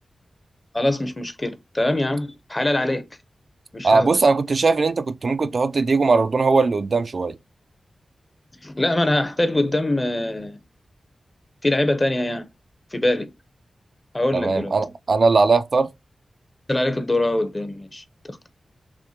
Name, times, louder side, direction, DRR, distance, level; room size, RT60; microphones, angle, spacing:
voice 1, 0.7-3.0 3.7-4.1 8.6-10.6 11.6-12.4 12.9-13.3 14.1-14.7 16.7-18.5, left 1 dB, 25° left, 0.8 m, -23 dB
voice 2, 3.8-7.4 14.3-15.9, right 4 dB, 60° right, 0.3 m, -19 dB
5.9 x 2.1 x 2.9 m
cardioid pair, 65°, 0 cm